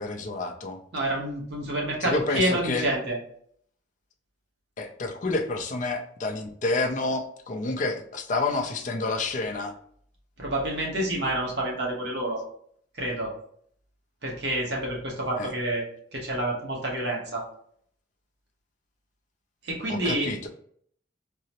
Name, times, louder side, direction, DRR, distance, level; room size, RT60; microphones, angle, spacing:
voice 1, 0.0-0.8 2.0-2.9 4.8-9.7 15.4-15.5 19.9-20.5, left 3 dB, 40° left, 3 dB, 0.4 m, -29 dB
voice 2, 0.9-3.2 10.4-12.4 13.0-13.3 14.2-15.8 16.1-17.4 19.6-20.3, right 1 dB, 65° right, -2 dB, 0.9 m, -28 dB
3.7 x 2.1 x 2.8 m, 0.62 s
head